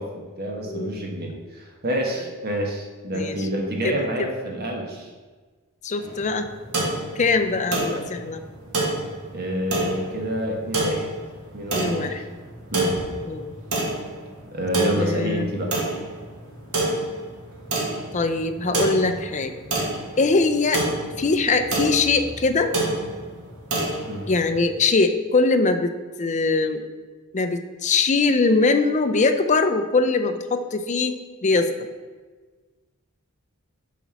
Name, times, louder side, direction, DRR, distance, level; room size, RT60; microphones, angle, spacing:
voice 1, 0.0-5.1 9.3-11.1 11.5-12.1 12.7-13.0 14.5-15.7 24.1-24.3, equal, 45° right, 0 dB, 1.3 m, -28 dB
voice 2, 0.6-1.0 3.1-3.5 3.8-4.3 5.8-6.5 7.2-8.4 11.7-12.2 13.2-13.5 15.0-15.5 18.1-19.5 20.2-20.8 21.2-22.7 24.3-25.9 26.2-26.8 27.3-31.7, left 3 dB, 35° left, 8 dB, 0.5 m, -22 dB
sound 1, 6.0-24.7, right 2 dB, 85° right, 2.0 m, -29 dB
7.2 x 4.1 x 6.0 m, 1.4 s
head